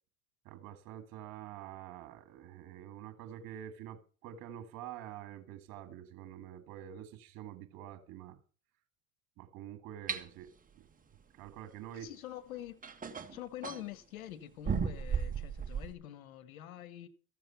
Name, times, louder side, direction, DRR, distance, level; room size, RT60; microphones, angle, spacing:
voice 1, 0.5-8.4 9.4-10.9 11.3-12.1, right 11 dB, 55° right, 1.8 m, -47 dB
sound 1, 10.1-10.2 12.1-12.2 12.8-13.9 14.7-15.9, right 6 dB, 20° right, 1.5 m, -35 dB
voice 2, 11.9-12.8 13.3-17.1, left 12 dB, 90° left, 1.3 m, -46 dB
14.0 x 7.6 x 5.7 m
supercardioid pair, 90°, 41 cm